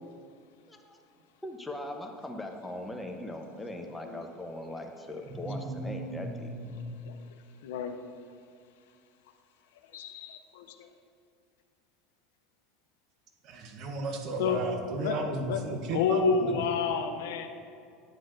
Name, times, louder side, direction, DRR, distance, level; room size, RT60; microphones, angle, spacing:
voice 1, 1.4-6.6, left 1 dB, 5° left, 3 dB, 0.8 m, -40 dB
voice 2, 5.4-7.0 13.4-16.6, right 2 dB, 55° right, 4 dB, 0.9 m, -35 dB
voice 3, 7.6-8.0 9.9-10.9 14.4-14.6 15.0-15.2 15.4-15.6 15.9-17.5, left 5 dB, 80° left, 6 dB, 0.5 m, -29 dB
9.5 x 7.6 x 2.5 m, 2.3 s
supercardioid pair, 110°, 0 cm